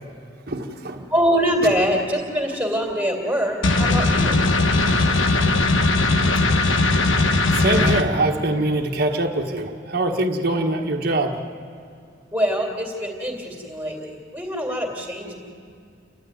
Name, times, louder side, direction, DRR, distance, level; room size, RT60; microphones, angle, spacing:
voice 1, 0.5-1.1 1.6-1.7 4.8-4.9 5.4-5.6 6.9-7.0 7.5-11.4, right 2 dB, 50° right, 1 dB, 1.4 m, -23 dB
voice 2, 1.1-4.4 12.3-15.3, equal, 10° right, 0 dB, 2.8 m, -24 dB
sound 1, 3.6-8.0, left 2 dB, 80° left, 1.2 m, -19 dB
29.5 x 12.5 x 9.2 m, 2.4 s
head